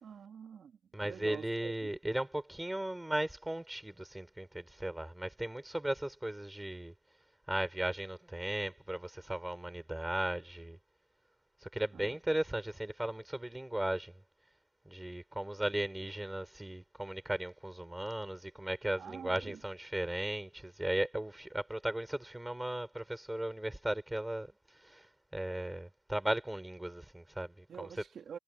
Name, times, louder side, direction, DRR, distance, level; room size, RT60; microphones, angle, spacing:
voice 1, 0.0-0.8 1.0-1.9 11.9-12.1 19.0-19.6 27.7-28.4, right 7 dB, 55° right, 3.0 m, -47 dB
voice 2, 0.9-6.9 7.5-10.8 11.6-14.1 14.9-25.1 25.3-27.9, right 1 dB, 10° right, 5.9 m, -36 dB
cardioid pair, 90°, 0 cm